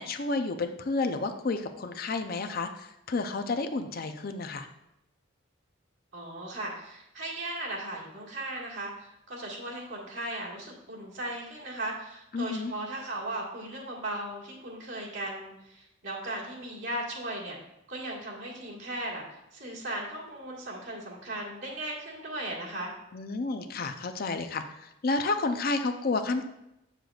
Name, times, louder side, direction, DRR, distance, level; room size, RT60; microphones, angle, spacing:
voice 1, 0.0-4.7 12.3-12.7 23.1-26.4, left 3 dB, 45° left, 7 dB, 0.5 m, -31 dB
voice 2, 6.1-17.6 17.9-22.9, right 1 dB, 65° right, -4 dB, 1.7 m, -37 dB
7.7 x 6.6 x 2.4 m, 0.85 s
head